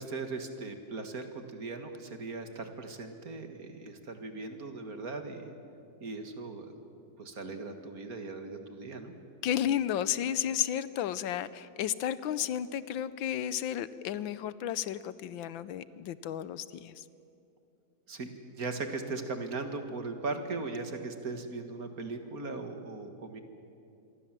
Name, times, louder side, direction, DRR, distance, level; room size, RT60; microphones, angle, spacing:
voice 1, 0.0-5.5 6.0-6.7 7.2-9.1 18.1-18.3 18.6-23.4, right 3 dB, 50° right, 6 dB, 2.1 m, -38 dB
voice 2, 9.4-17.0, left 10 dB, 85° left, 16 dB, 1.5 m, -32 dB
26.5 x 23.0 x 7.5 m, 2.6 s
omnidirectional pair, 2.1 m